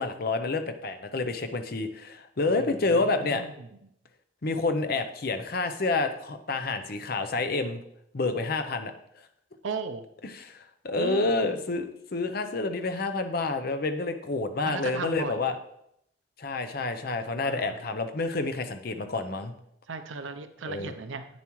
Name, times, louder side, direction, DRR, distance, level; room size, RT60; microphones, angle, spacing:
voice 1, 0.0-3.5 4.4-7.8 8.1-8.9 10.2-15.6 16.4-19.5 20.6-20.9, left 3 dB, 50° left, 8 dB, 0.7 m, -29 dB
voice 2, 3.0-3.4 9.6-10.0 11.0-11.4 14.6-15.4 17.4-17.8 19.9-21.3, right 4 dB, 85° right, 9 dB, 0.6 m, -35 dB
8.9 x 7.1 x 3.1 m, 0.77 s
head